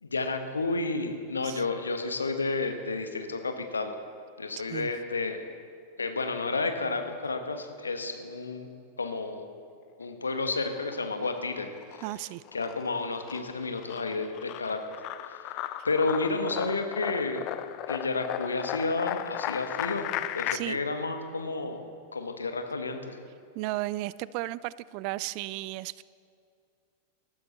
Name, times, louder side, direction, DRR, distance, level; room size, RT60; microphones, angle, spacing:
voice 1, 0.0-3.9 4.4-5.4 6.0-8.7 9.0-9.5 10.0-12.0 12.5-15.0 15.2-15.5 15.8-17.4 17.9-20.1 20.3-21.8 22.1-23.2, left 3 dB, 75° left, 6 dB, 1.2 m, -31 dB
sound 1, 10.7-11.4 11.8-20.6, left 14 dB, 40° left, 0.5 m, -36 dB
voice 2, 12.0-12.4 20.5-20.8 23.5-26.0, right 18 dB, 45° right, 20 dB, 0.3 m, -34 dB
19.5 x 13.0 x 4.1 m, 2.4 s
figure-of-eight pair, 90°, 0 cm